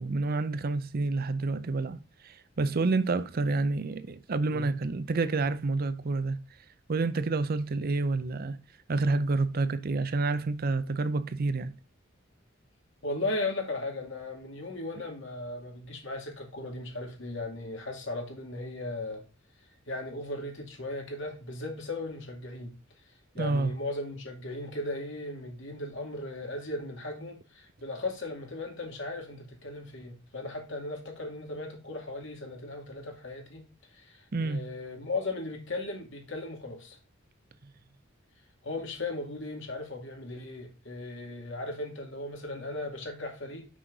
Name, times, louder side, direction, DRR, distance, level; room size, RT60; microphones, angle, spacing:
voice 1, 0.0-6.4 6.9-8.6 8.9-11.7 23.4-23.7 34.3-34.7, right 3 dB, 45° right, 0.5 m, -28 dB
voice 2, 13.0-19.2 19.9-22.7 23.3-33.6 33.9-37.0 38.6-43.7, left 2 dB, 65° left, 2.4 m, -37 dB
6.4 x 6.3 x 3.9 m
head